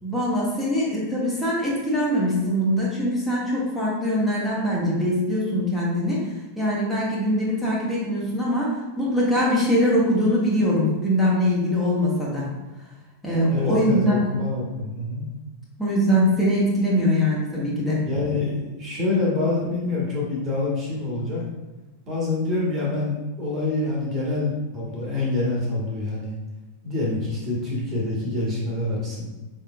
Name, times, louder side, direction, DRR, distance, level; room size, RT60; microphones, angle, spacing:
voice 1, 0.0-6.2 6.6-12.5 13.2-14.3 15.8-18.0, equal, ahead, -8 dB, 1.3 m, -22 dB
voice 2, 13.5-15.3 18.1-21.4 22.1-26.3 26.8-29.2, left 2 dB, 30° right, -4 dB, 1.4 m, -26 dB
5.5 x 3.6 x 2.4 m, 1.1 s
figure-of-eight pair, 90°, 0 cm